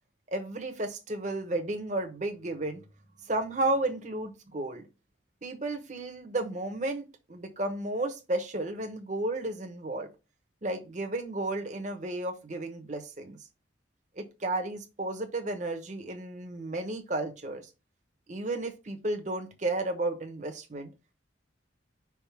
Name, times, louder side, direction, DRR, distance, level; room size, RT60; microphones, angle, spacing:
voice 1, 0.3-2.8 3.3-4.8 5.4-10.1 10.6-13.4 14.2-17.7 18.3-20.9, right 2 dB, 40° right, 1.0 m, -33 dB
5.5 x 3.6 x 5.7 m
head